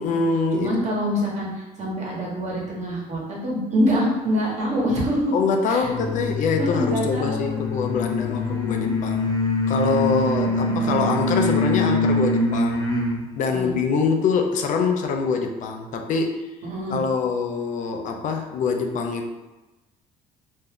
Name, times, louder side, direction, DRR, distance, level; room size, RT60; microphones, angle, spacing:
voice 1, 0.0-0.7 5.3-9.3 9.7-12.9 13.4-16.5 16.9-19.3, left 5 dB, 60° left, 4 dB, 0.5 m, -24 dB
voice 2, 0.5-5.2 5.7-6.2 6.6-7.6 8.2-8.9 10.3-11.1 13.5-13.7 16.6-17.0, equal, 50° right, -4 dB, 1.2 m, -26 dB
sound 1, 5.8-13.2, left 1 dB, 25° left, 0.9 m, -24 dB
2.6 x 2.3 x 3.5 m, 1.1 s
cardioid pair, 90°, 15 cm